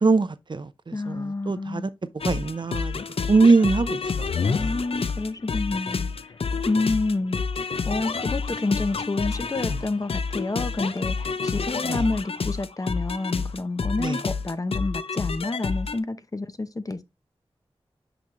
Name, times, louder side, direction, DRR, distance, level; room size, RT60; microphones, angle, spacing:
voice 1, 0.0-1.8 2.3-2.9 3.3-4.0 4.6-4.7 11.9-12.0 14.0-14.2, right 3 dB, 50° right, 0.6 m, -22 dB
voice 2, 0.9-1.9 4.4-6.4 6.7-7.4 7.9-17.0, left 2 dB, 35° left, 0.7 m, -29 dB
sound 1, 2.2-16.0, left 5 dB, 70° left, 0.6 m, -29 dB
6.0 x 5.3 x 3.0 m
wide cardioid pair, 60°, 10 cm